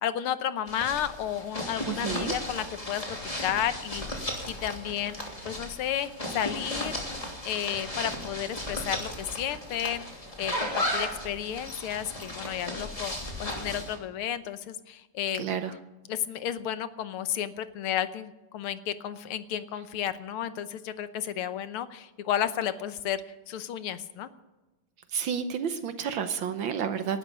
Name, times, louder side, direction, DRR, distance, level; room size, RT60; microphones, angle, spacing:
voice 1, 0.0-3.0 3.4-4.0 4.5-5.2 5.4-7.0 7.4-10.0 10.4-15.5 16.1-23.2 23.5-24.3, left 10 dB, 80° left, 12 dB, 1.8 m, -32 dB
sound 1, 0.7-14.0, left 1 dB, 15° left, 3.0 m, -35 dB
voice 2, 1.9-2.4 15.3-15.7 25.1-27.2, right 7 dB, 70° right, 9 dB, 1.6 m, -30 dB
19.0 x 12.0 x 5.3 m, 1.1 s
omnidirectional pair, 2.4 m